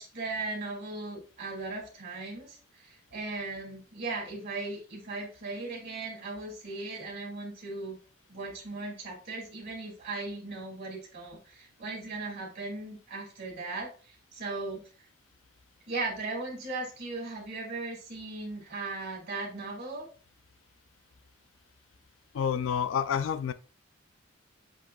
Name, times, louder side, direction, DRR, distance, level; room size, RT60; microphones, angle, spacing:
voice 1, 0.0-8.0 8.3-14.9 15.9-20.1, right 3 dB, 55° right, 2.1 m, -37 dB
voice 2, 22.3-23.5, left 7 dB, 70° left, 0.3 m, -28 dB
7.4 x 2.9 x 2.2 m
head